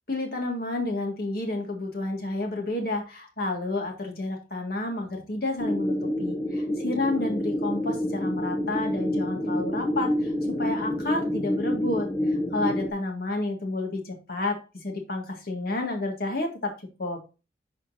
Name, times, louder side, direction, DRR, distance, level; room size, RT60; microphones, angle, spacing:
voice 1, 0.1-10.3 10.6-16.7 17.0-17.2, left 2 dB, 55° left, 2 dB, 2.0 m, -30 dB
sound 1, 5.6-12.9, equal, 20° left, 0.7 m, -28 dB
11.0 x 4.3 x 2.7 m, 0.31 s
head